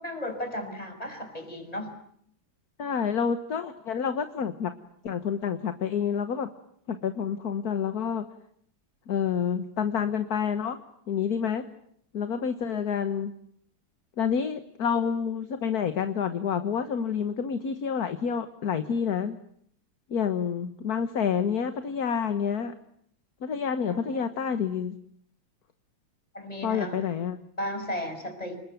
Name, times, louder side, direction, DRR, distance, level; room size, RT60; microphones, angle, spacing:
voice 1, 0.0-2.0 23.9-24.2 26.3-27.0 27.6-28.6, left 1 dB, 20° left, 6 dB, 5.5 m, -35 dB
voice 2, 2.8-4.7 5.0-6.5 6.9-8.3 9.1-10.8 11.1-11.6 12.1-13.3 14.2-19.4 20.1-22.7 23.4-24.9 26.6-27.4, left 7 dB, 55° left, 9 dB, 1.7 m, -28 dB
28.0 x 21.0 x 9.3 m, 0.68 s
omnidirectional pair, 2.1 m